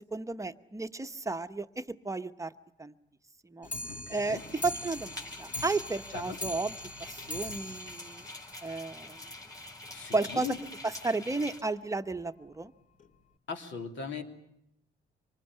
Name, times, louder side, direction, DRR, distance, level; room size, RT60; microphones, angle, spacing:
voice 1, 0.0-2.5 2.8-2.9 3.5-3.7 4.1-6.7 7.0-8.3 8.6-9.2 10.1-10.5 10.8-12.7, right 3 dB, 15° right, 10 dB, 0.9 m, -33 dB
Clock, 3.6-9.1 9.5-9.6 9.8-9.9 10.2-10.3 10.6-10.7 11.4-11.5 12.2-12.3 13.0-13.1, left 1 dB, 40° left, 2.0 m, -42 dB
voice 2, 3.9-4.4 6.1-6.4 9.9-10.6 13.5-14.2, left 6 dB, 70° left, 5 dB, 3.2 m, -39 dB
sound 1, 4.3-11.6, left 1 dB, 15° left, 4.4 m, -46 dB
25.5 x 20.0 x 9.9 m, 0.79 s
cardioid pair, 90°, 20 cm